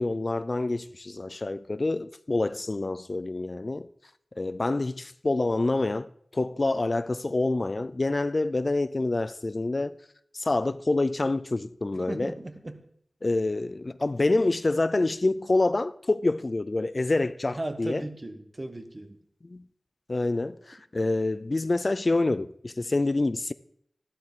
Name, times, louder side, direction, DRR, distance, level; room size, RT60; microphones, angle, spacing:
voice 1, 0.0-3.9 4.4-9.9 10.3-12.3 13.2-18.1 19.4-19.6 20.1-23.5, left 2 dB, 45° left, 0.4 m, -27 dB
voice 2, 12.1-12.9 17.5-19.2, right 1 dB, 35° right, 1.1 m, -36 dB
13.0 x 11.5 x 3.7 m
wide cardioid pair, 65°, 0 cm